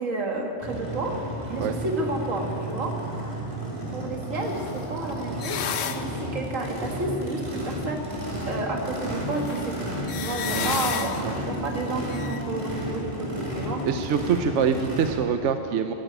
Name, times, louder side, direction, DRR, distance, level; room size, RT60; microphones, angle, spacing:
voice 1, 0.0-3.0 3.9-9.9 10.2-13.8, right 2 dB, 90° right, 1 dB, 2.3 m, -31 dB
Race car auto racing / Idling / Accelerating revving vroom, 0.6-15.1, right 1 dB, 35° right, 3.0 m, -32 dB
sound 1, 4.3-6.7 8.4-8.5 9.3-11.5 12.1-12.4, left 8 dB, 75° left, 1.1 m, -33 dB
voice 2, 11.0-11.3 13.9-15.9, right 7 dB, 70° right, 8 dB, 1.0 m, -25 dB
13.0 x 12.0 x 8.8 m, 2.6 s
omnidirectional pair, 1.3 m